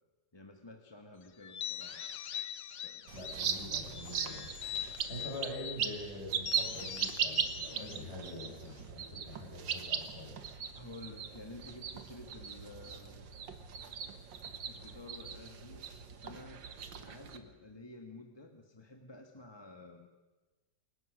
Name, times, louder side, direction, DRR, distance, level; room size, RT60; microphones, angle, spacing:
voice 1, 0.3-2.0 2.8-3.1 10.8-13.3 14.7-15.9 16.2-20.1, left 2 dB, 15° left, 4 dB, 1.3 m, -51 dB
sound 1, 1.4-3.5 3.9-5.8 6.4-8.9, left 9 dB, 70° left, 1.7 m, -43 dB
voice 2, 3.1-4.5 5.1-10.4, left 1 dB, 35° left, 0 dB, 5.8 m, -45 dB
sound 2, 3.1-17.4, right 7 dB, 75° right, 2.1 m, -39 dB
28.0 x 18.0 x 6.5 m, 1.2 s
omnidirectional pair, 2.0 m